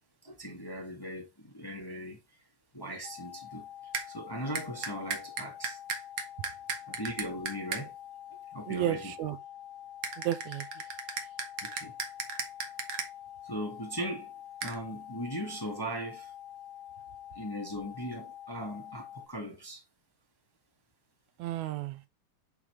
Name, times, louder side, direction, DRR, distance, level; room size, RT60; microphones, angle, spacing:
voice 1, 0.2-2.4 2.7-3.7 4.1-5.8 6.9-7.9 8.5-9.1 11.6-11.9 13.4-14.3 14.6-16.3 17.3-19.8, equal, 10° left, 1.3 m, -39 dB
sound 1, 3.0-19.3, left 11 dB, 75° left, 1.4 m, -47 dB
sound 2, 3.9-4.1 4.6-7.8 10.0-13.1 14.6-14.8, right 6 dB, 55° right, 1.7 m, -35 dB
voice 2, 8.7-9.4 10.2-10.9 21.4-22.0, right 13 dB, 80° right, 2.0 m, -33 dB
8.6 x 5.1 x 3.3 m
omnidirectional pair, 3.4 m